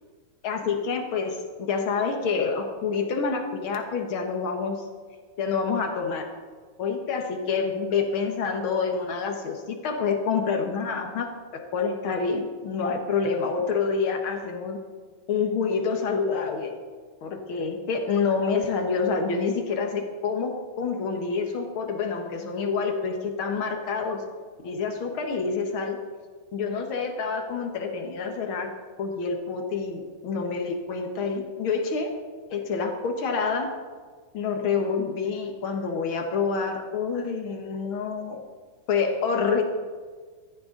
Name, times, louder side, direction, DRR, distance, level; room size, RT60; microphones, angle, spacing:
voice 1, 0.4-4.9 5.4-6.3 6.8-14.8 15.3-16.7 17.2-24.2 24.6-26.0 26.5-28.7 29.0-32.1 32.5-33.7 34.3-38.4 38.9-39.6, left 5 dB, 65° left, 4 dB, 1.3 m, -27 dB
16.5 x 13.5 x 3.9 m, 1.5 s
omnidirectional pair, 4.1 m